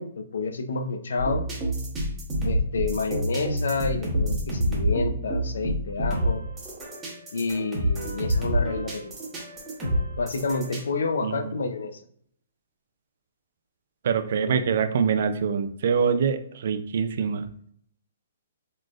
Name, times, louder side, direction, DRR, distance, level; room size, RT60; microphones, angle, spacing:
voice 1, 0.0-1.5 2.4-6.5 7.3-9.2 9.8-12.0 14.4-14.7, left 4 dB, 80° left, 8 dB, 0.6 m, -29 dB
sound 1, 1.2-10.8, equal, 15° right, 1.2 m, -27 dB
voice 2, 14.0-17.4, right 6 dB, 60° right, 9 dB, 0.4 m, -24 dB
3.8 x 3.2 x 2.4 m, 0.67 s
hypercardioid pair, 155°, 0 cm